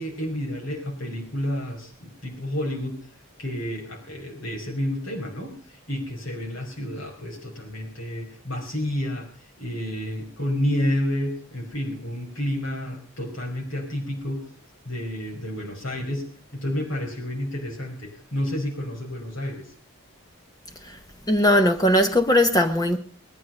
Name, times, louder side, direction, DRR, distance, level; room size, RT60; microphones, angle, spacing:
voice 1, 0.0-3.0 3.4-9.3 9.6-14.4 14.9-19.7, left 1 dB, 70° left, 5.3 m, -30 dB
voice 2, 21.3-23.0, left 1 dB, 20° left, 0.9 m, -19 dB
20.0 x 10.5 x 5.2 m
head